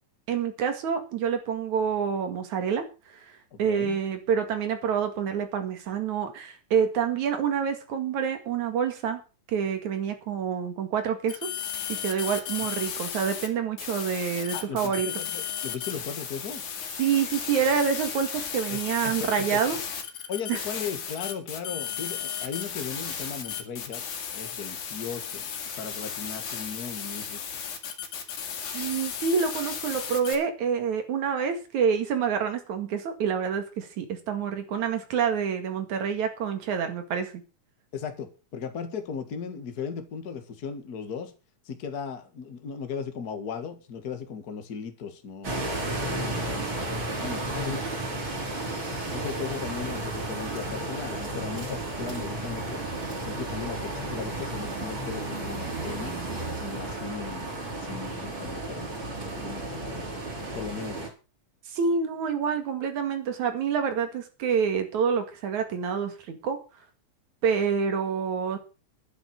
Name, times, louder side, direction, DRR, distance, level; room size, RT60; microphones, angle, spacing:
voice 1, 0.3-2.9 3.3-9.2 9.5-11.5 11.9-15.1 17.0-19.8 20.5-20.6 28.7-37.4 61.7-66.6 67.4-68.6, right 7 dB, 75° right, 3.3 m, -27 dB
voice 2, 3.5-4.0 12.6-12.7 14.5-16.7 18.7-19.7 20.3-24.0 24.3-25.5 25.8-27.4 37.9-41.3 41.7-46.7 47.2-47.9 48.8-52.8 53.2-56.2 56.6-60.1 60.5-61.1, left 6 dB, 35° left, 2.0 m, -37 dB
sound 1, 11.3-13.5 13.8-30.3, left 8 dB, 85° left, 3.8 m, -35 dB
sound 2, 45.4-61.1, right 2 dB, 40° right, 4.9 m, -33 dB
12.0 x 9.1 x 6.4 m
omnidirectional pair, 3.4 m